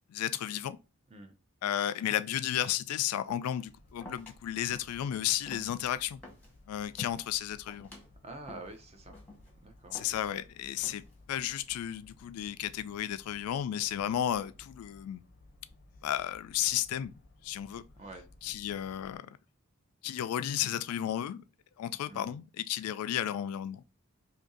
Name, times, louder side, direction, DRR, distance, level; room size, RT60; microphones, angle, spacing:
voice 1, 0.1-0.8 1.6-6.2 6.7-7.9 9.9-15.2 16.0-17.1 17.4-17.8 18.4-19.4 20.0-21.4 21.8-23.8, left 11 dB, 90° left, 0.3 m, -33 dB
sound 1, 3.3-3.6 4.0-4.4 4.7-5.0 5.3-6.5 6.9-7.3 7.7-8.1 8.5-8.8 9.1-9.5 9.9-10.4 10.8-11.2, left 2 dB, 5° left, 1.0 m, -50 dB
sound 2, 3.7-19.2, left 2 dB, 45° left, 0.5 m, -58 dB
voice 2, 8.2-9.2 9.6-10.1 18.0-18.3 22.1-22.4, right 2 dB, 30° right, 0.5 m, -47 dB
2.7 x 2.6 x 3.8 m
head